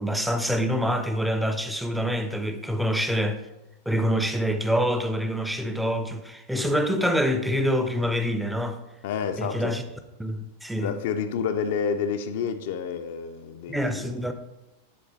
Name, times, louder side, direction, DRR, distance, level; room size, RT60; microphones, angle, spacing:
voice 1, 0.0-3.4 3.9-8.8 9.4-9.8 10.2-11.0 13.7-14.3, equal, 5° right, 0.5 m, -26 dB
voice 2, 9.0-9.8 10.8-14.3, left 6 dB, 55° left, 0.5 m, -29 dB
10.0 x 3.9 x 3.0 m
figure-of-eight pair, 90°, 0 cm